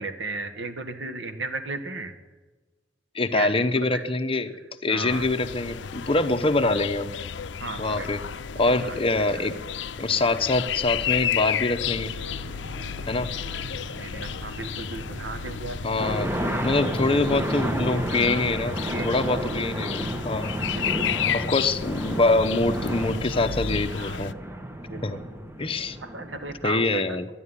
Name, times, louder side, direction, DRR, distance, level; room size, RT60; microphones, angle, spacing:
voice 1, 0.0-2.2 3.3-4.0 4.9-5.3 6.6-6.7 7.6-8.1 8.7-9.5 14.0-15.8 18.3-18.5 18.9-19.9 20.7-21.3 23.9-24.2 24.9-25.2 26.0-27.2, right 3 dB, 90° right, 8 dB, 1.7 m, -35 dB
voice 2, 3.1-4.5 4.8-7.2 7.8-8.2 8.6-9.6 10.0-12.1 13.1-13.3 15.8-20.5 21.3-24.3 25.0-25.2 25.6-26.0 26.6-27.3, left 2 dB, 30° left, 8 dB, 0.8 m, -25 dB
Park ambience, 5.1-24.3, left 8 dB, 70° left, 0.5 m, -32 dB
Aircraft, 11.8-18.5, right 1 dB, 45° right, 1.1 m, -41 dB
sound 1, 16.0-26.7, right 1 dB, 15° right, 1.0 m, -31 dB
11.0 x 11.0 x 9.8 m, 1.2 s
head